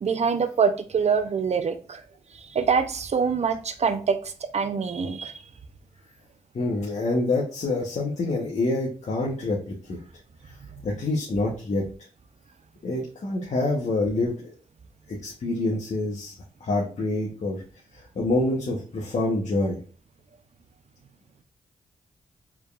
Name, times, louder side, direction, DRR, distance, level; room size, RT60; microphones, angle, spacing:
voice 1, 0.0-2.0 2.5-5.3, right 6 dB, 55° right, 10 dB, 0.6 m, -25 dB
voice 2, 6.5-10.0 10.8-11.8 12.8-14.5 15.1-16.3 16.6-17.6 17.9-19.8, left 2 dB, 60° left, -3 dB, 1.0 m, -26 dB
4.4 x 3.5 x 2.4 m, 0.39 s
cardioid pair, 50°, 14 cm